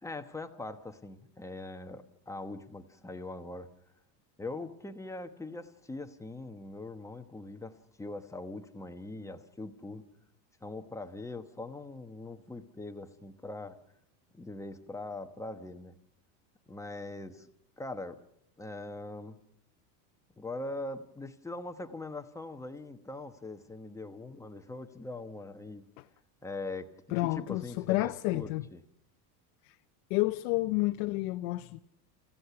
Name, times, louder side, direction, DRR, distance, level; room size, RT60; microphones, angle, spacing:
voice 1, 0.0-3.7 4.4-10.0 10.6-13.8 14.3-15.9 16.7-17.5 17.8-18.2 18.6-19.4 20.4-25.8 26.4-26.9 27.2-28.8, left 2 dB, 5° left, 1.0 m, -42 dB
voice 2, 27.1-28.6 29.6-29.8 30.1-31.8, left 20 dB, 65° left, 0.8 m, -30 dB
30.0 x 15.5 x 5.8 m
supercardioid pair, 145°, 50 cm